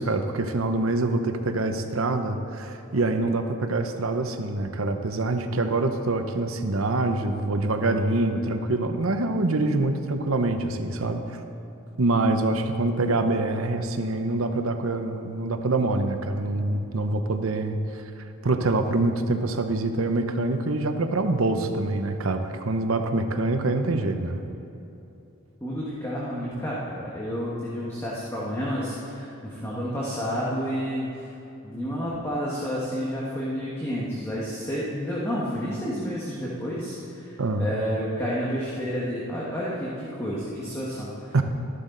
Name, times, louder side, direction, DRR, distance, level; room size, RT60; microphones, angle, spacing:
voice 1, 0.0-11.4 12.0-18.0 18.4-24.4 37.4-37.7 41.3-41.4, right 2 dB, 80° right, 7 dB, 0.9 m, -25 dB
voice 2, 25.6-31.3 31.6-41.4, equal, 15° left, -6 dB, 1.5 m, -30 dB
13.0 x 11.5 x 3.9 m, 2.9 s
head